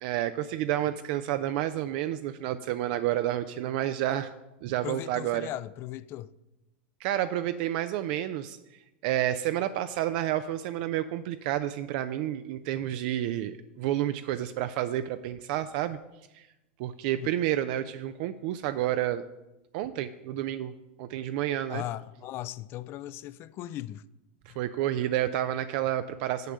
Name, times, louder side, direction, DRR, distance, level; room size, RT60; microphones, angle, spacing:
voice 1, 0.0-4.3 4.6-5.5 7.0-8.6 9.0-16.0 16.3-16.5 16.8-19.2 19.7-20.7 21.0-21.8 24.5-26.5, right 12 dB, 55° right, 0.4 m, -30 dB
voice 2, 4.8-6.3 17.2-17.3 21.7-24.0 24.5-24.6, left 13 dB, 40° left, 0.4 m, -38 dB
6.6 x 6.5 x 6.2 m
hypercardioid pair, 115°, 6 cm